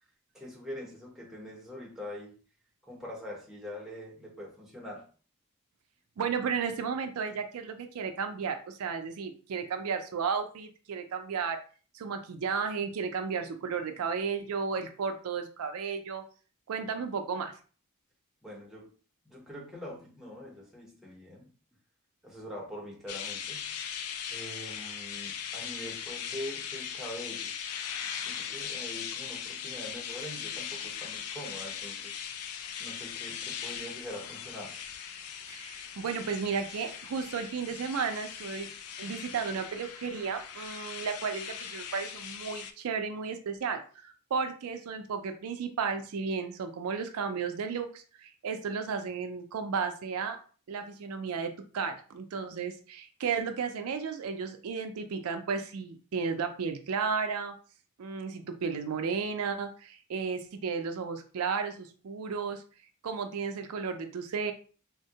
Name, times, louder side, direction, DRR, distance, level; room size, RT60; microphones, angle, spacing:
voice 1, 0.3-2.4 2.8-5.1 18.4-18.9 19.2-21.5 22.2-23.7 24.3-27.5 28.2-32.2 32.8-34.8, left 1 dB, ahead, -3 dB, 0.7 m, -43 dB
voice 2, 6.2-11.6 11.9-16.2 16.7-17.5 35.5-38.7 39.0-50.4 50.7-57.5 58.0-62.6 63.0-64.5, right 5 dB, 75° right, 7 dB, 0.4 m, -33 dB
sound 1, 23.1-42.7, left 8 dB, 75° left, 0.4 m, -39 dB
3.4 x 2.1 x 2.7 m, 0.39 s
head